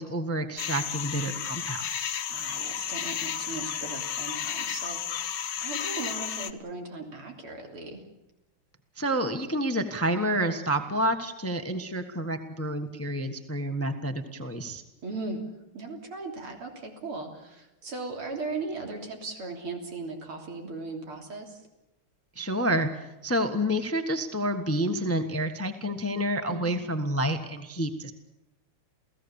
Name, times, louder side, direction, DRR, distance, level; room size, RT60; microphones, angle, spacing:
voice 1, 0.0-2.2 9.0-14.8 22.4-28.1, right 1 dB, 10° left, 8 dB, 1.0 m, -29 dB
sound 1, 0.6-6.5, left 9 dB, 60° left, 1.6 m, -33 dB
voice 2, 2.3-5.0 5.6-8.0 15.0-15.4 15.7-21.6 26.5-26.8, right 3 dB, 75° right, 3 dB, 4.2 m, -37 dB
29.0 x 17.0 x 7.1 m, 0.89 s
omnidirectional pair, 2.4 m